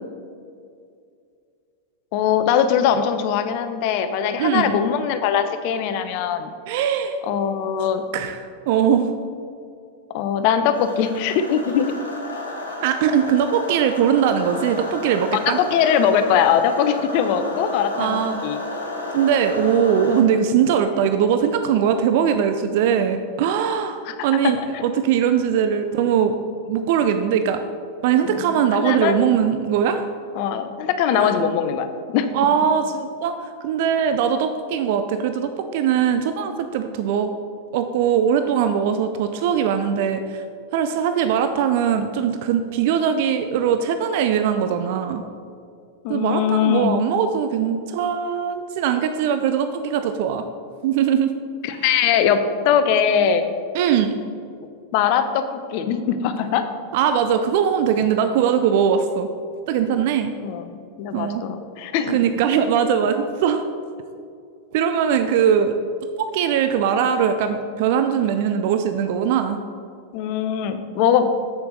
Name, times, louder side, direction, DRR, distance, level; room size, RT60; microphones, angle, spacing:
voice 1, 2.1-6.5 7.2-8.0 10.1-11.9 15.6-18.6 24.1-24.2 24.4-24.8 28.2-29.2 30.4-31.9 32.1-32.3 46.0-47.0 51.6-53.4 54.9-56.7 60.4-62.2 70.1-71.2, left 8 dB, 45° left, 9 dB, 0.6 m, -21 dB
voice 2, 4.4-4.8 6.7-7.1 7.8-7.9 8.1-8.4 8.7-9.1 12.8-15.6 18.0-18.4 19.1-26.4 26.7-27.6 28.0-30.1 31.1-31.3 32.3-37.3 37.7-40.4 40.7-45.2 46.1-50.5 50.8-51.3 51.7-51.8 53.7-54.2 56.9-59.3 59.7-60.3 61.1-61.4 62.1-63.7 64.7-65.8 66.2-69.6, right 8 dB, 50° right, 8 dB, 0.4 m, -21 dB
sound 1, 10.7-20.2, left 2 dB, 75° left, 1.5 m, -32 dB
7.9 x 6.8 x 3.9 m, 2.3 s
figure-of-eight pair, 90°, 0 cm